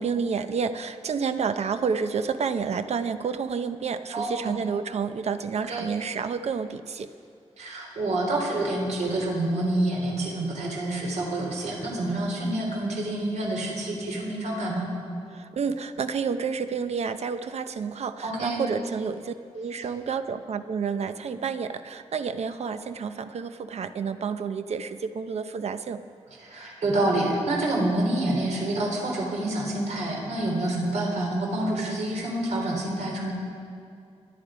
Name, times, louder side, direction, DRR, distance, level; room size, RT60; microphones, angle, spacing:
voice 1, 0.0-7.1 15.3-26.0, right 6 dB, 65° right, 10 dB, 0.8 m, -30 dB
voice 2, 4.1-4.6 5.7-5.9 7.6-14.9 18.2-18.6 26.4-33.3, right 1 dB, 90° right, -1 dB, 3.8 m, -27 dB
26.5 x 10.5 x 5.1 m, 2.4 s
wide cardioid pair, 150°, 12 cm